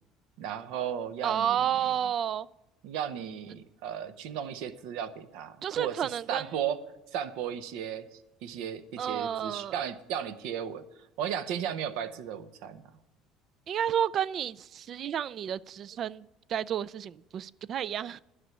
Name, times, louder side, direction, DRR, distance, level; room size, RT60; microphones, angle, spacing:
voice 1, 0.4-1.7 2.8-6.8 7.1-10.8 11.2-12.8, right 9 dB, 80° right, 0.9 m, -35 dB
voice 2, 1.2-2.5 5.6-6.4 9.0-9.8 13.7-16.2 16.5-18.2, right 9 dB, 45° right, 0.4 m, -31 dB
11.0 x 6.2 x 9.1 m
cardioid pair, 130°, 0 cm